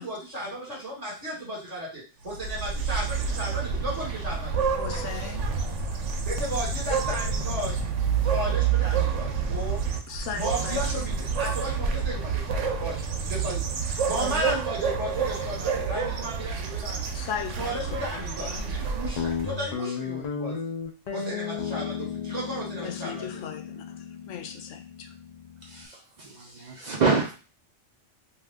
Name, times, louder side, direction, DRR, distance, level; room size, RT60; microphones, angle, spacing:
voice 1, 0.0-4.7 6.2-7.8 8.2-9.8 10.3-13.7 14.1-17.0 17.6-20.7 21.1-23.4, equal, 35° right, 1.6 m, -34 dB
sound 1, 2.2-19.5, right 6 dB, 90° right, 0.9 m, -28 dB
voice 2, 4.8-5.5 10.1-10.9 17.1-18.7 22.8-25.1, left 8 dB, 85° left, 0.9 m, -38 dB
Guitar, 19.2-25.9, left 6 dB, 60° left, 0.4 m, -34 dB
voice 3, 25.6-27.3, right 4 dB, 55° right, 0.5 m, -27 dB
2.6 x 2.4 x 3.4 m
omnidirectional pair, 1.2 m